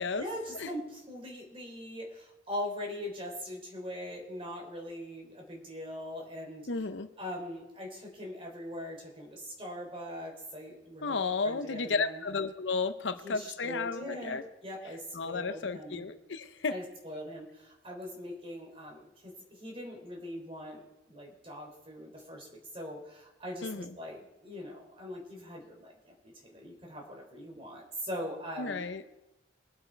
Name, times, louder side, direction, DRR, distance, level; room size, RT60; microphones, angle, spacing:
voice 1, 0.0-6.7 7.2-11.2 11.4-12.2 13.2-16.0 16.7-28.8, equal, 30° right, 0 dB, 3.4 m, -41 dB
voice 2, 6.7-7.1 11.0-14.4 15.1-16.7 23.6-23.9 28.6-29.0, left 4 dB, 75° left, 10 dB, 0.8 m, -33 dB
22.5 x 8.0 x 4.5 m, 0.98 s
head